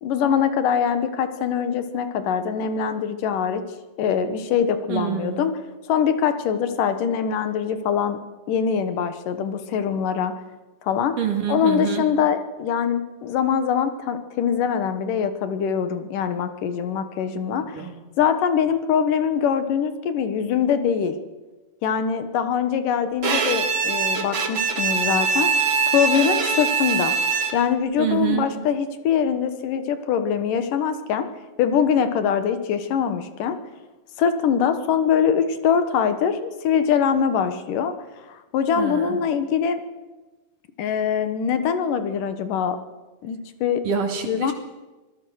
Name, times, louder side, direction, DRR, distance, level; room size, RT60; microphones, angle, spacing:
voice 1, 0.0-3.6 4.0-5.5 5.9-8.2 8.5-10.3 10.8-11.2 11.5-17.9 18.2-21.1 21.8-25.5 25.9-27.1 27.5-31.3 31.6-33.6 34.2-37.9 38.3-39.8 40.8-42.8 43.2-43.8 44.3-44.5, left 7 dB, 75° left, 10 dB, 2.9 m, -23 dB
voice 2, 4.9-5.4 11.2-12.1 17.7-17.9 28.0-28.5 38.8-39.2 43.8-44.5, right 8 dB, 70° right, 4 dB, 4.2 m, -26 dB
Bowed string instrument, 23.2-27.8, right 5 dB, 40° right, 2.2 m, -23 dB
25.5 x 18.5 x 6.4 m, 1.2 s
omnidirectional pair, 3.9 m